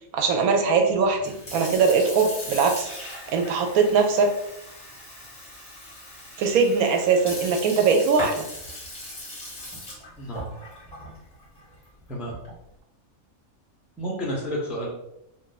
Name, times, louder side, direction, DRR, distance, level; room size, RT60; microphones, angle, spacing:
voice 1, 0.1-4.3 6.4-8.4, right 5 dB, 85° right, 4 dB, 1.1 m, -21 dB
Sink (filling or washing) / Fill (with liquid), 1.1-12.7, left 1 dB, 30° left, 0.9 m, -38 dB
voice 2, 10.2-10.5 12.1-12.4 14.0-14.9, equal, ahead, -4 dB, 0.5 m, -30 dB
2.5 x 2.5 x 3.9 m, 0.82 s
omnidirectional pair, 1.5 m